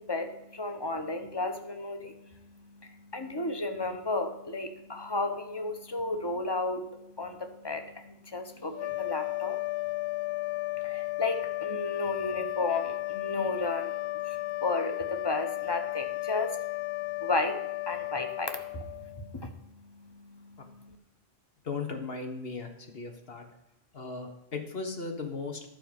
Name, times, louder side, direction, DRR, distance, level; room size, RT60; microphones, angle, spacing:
voice 1, 0.0-21.0, left 3 dB, 25° left, 6 dB, 1.0 m, -34 dB
sound 1, 8.7-19.3, left 19 dB, 85° left, 0.8 m, -34 dB
voice 2, 21.6-23.5 23.9-25.7, left 4 dB, 70° left, 4 dB, 1.5 m, -37 dB
11.5 x 5.2 x 7.1 m, 0.93 s
omnidirectional pair, 1.0 m